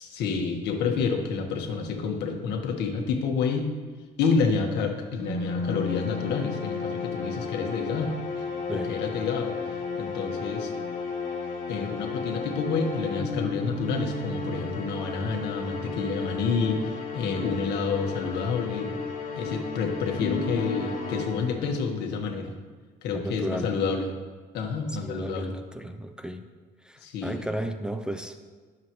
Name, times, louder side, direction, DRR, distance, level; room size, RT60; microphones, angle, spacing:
voice 1, 0.0-3.7 4.2-8.1 8.7-9.5 9.9-10.7 11.7-18.9 19.3-22.5 23.0-24.1 24.5-25.5 27.0-27.5, left 5 dB, 85° left, 3 dB, 1.7 m, -29 dB
sound 1, 5.2-21.9, left 4 dB, 55° left, 2.9 m, -33 dB
voice 2, 23.1-23.7 24.9-26.4 26.8-28.4, equal, 5° right, 7 dB, 0.7 m, -34 dB
21.0 x 7.5 x 3.2 m, 1.4 s
cardioid pair, 110°, 17 cm